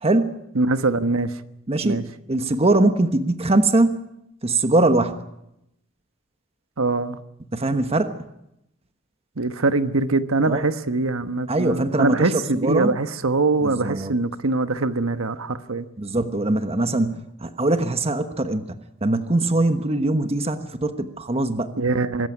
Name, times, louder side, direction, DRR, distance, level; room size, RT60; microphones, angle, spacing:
voice 1, 0.0-0.4 1.7-4.0 4.4-5.2 7.5-8.2 10.5-10.6 11.5-12.9 13.6-14.1 16.0-21.7, right 2 dB, 30° right, 1.1 m, -22 dB
voice 2, 0.5-1.4 1.8-2.0 6.8-7.2 9.4-15.9 21.8-22.3, right 3 dB, 85° right, 1.2 m, -23 dB
25.0 x 14.0 x 10.0 m
head